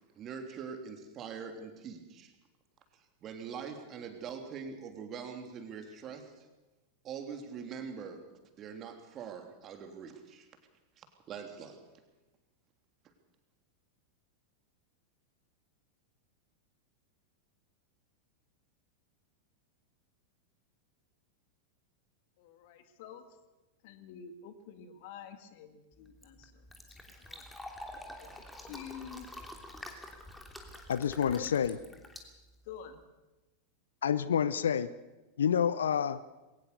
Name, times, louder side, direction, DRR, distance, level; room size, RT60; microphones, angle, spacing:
voice 1, 0.1-2.3 3.2-6.5 7.0-8.2 8.5-10.5 11.0-11.8, right 6 dB, 30° right, 5 dB, 3.2 m, -43 dB
voice 2, 22.4-23.2 23.8-26.5 27.2-27.4 28.2-29.3 31.3-31.5 31.9-32.0 32.7-33.0, left 8 dB, 50° left, 9 dB, 2.0 m, -48 dB
Fill (with liquid), 25.9-33.0, left 1 dB, 5° left, 3.1 m, -48 dB
voice 3, 30.9-31.8 34.0-34.9 35.4-36.2, left 8 dB, 65° left, 16 dB, 0.7 m, -28 dB
21.5 x 18.5 x 6.9 m, 1.1 s
figure-of-eight pair, 90°, 0 cm